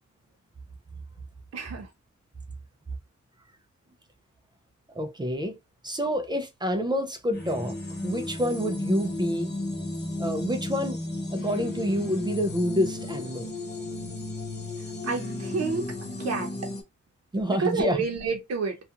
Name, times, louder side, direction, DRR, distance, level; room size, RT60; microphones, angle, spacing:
voice 1, 1.5-1.9 15.0-15.9 16.2-16.5 17.5-18.8, right 4 dB, 55° right, 0.7 m, -29 dB
voice 2, 4.9-5.6 5.8-7.8 8.0-9.5 10.2-11.0 11.3-13.5 17.3-18.0, equal, 15° right, 0.3 m, -28 dB
sound 1, 7.3-16.8, left 2 dB, 35° left, 0.8 m, -34 dB
2.4 x 2.3 x 2.8 m
wide cardioid pair, 160°, 31 cm